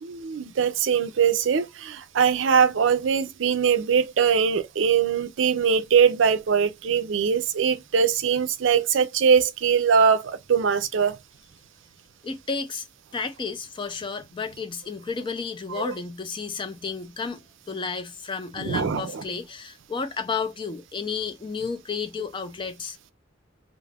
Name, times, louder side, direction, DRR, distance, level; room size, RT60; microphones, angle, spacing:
voice 1, 0.0-11.2 15.7-15.9 18.6-19.2, right 6 dB, 70° right, 0.4 m, -22 dB
voice 2, 12.2-12.8 13.1-23.0, left 5 dB, 25° left, 0.4 m, -32 dB
2.3 x 2.0 x 3.4 m
head